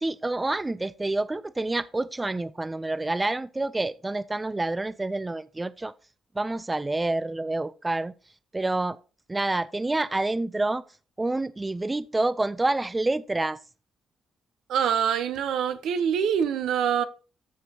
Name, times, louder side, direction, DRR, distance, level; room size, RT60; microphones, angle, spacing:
voice 1, 0.0-5.9 6.4-8.1 8.5-9.0 9.3-10.8 11.2-13.6, right 2 dB, 15° right, 0.3 m, -28 dB
voice 2, 14.7-17.0, right 8 dB, 75° right, 0.7 m, -25 dB
14.0 x 5.2 x 2.8 m
cardioid pair, 90°, 0 cm